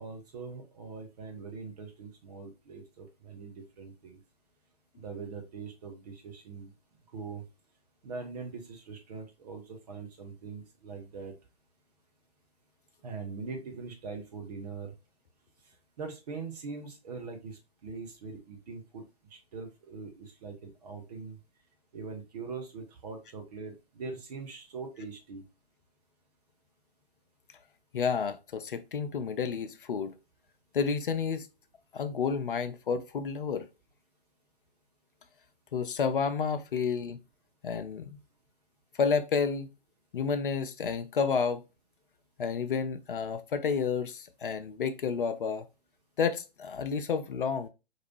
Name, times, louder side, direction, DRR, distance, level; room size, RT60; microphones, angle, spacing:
voice 1, 0.0-4.2 5.0-6.7 7.1-7.4 8.0-11.3 13.0-14.9 16.0-19.0 19.5-21.4 21.9-25.4, right 4 dB, 40° right, 1.1 m, -42 dB
voice 2, 27.9-30.1 30.7-31.5 31.9-33.7 35.7-37.2 37.6-38.2 39.0-39.7 40.1-41.6 42.4-45.6 46.2-47.7, left 6 dB, 55° left, 0.5 m, -30 dB
4.6 x 2.8 x 2.9 m
figure-of-eight pair, 125°, 31 cm